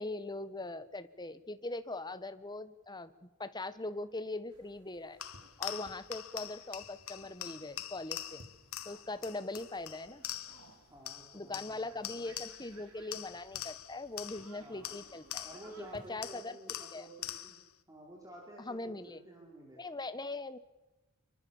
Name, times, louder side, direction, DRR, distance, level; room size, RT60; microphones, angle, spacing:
voice 1, 0.0-5.2 5.6-8.4 8.8-10.2 11.3-15.5 15.8-17.1 18.6-19.2 19.8-20.6, left 2 dB, 20° left, 12 dB, 1.2 m, -41 dB
sound 1, 4.5-16.4, right 2 dB, 80° right, 3.9 m, -60 dB
sound 2, 5.2-10.7 11.0-12.8 13.1-15.8 16.2-17.7, left 12 dB, 70° left, 1.4 m, -44 dB
voice 2, 10.9-12.3 14.6-14.9 15.4-17.6 17.9-19.8, right 1 dB, 15° right, -1 dB, 4.4 m, -52 dB
26.5 x 24.0 x 7.2 m, 1.1 s
head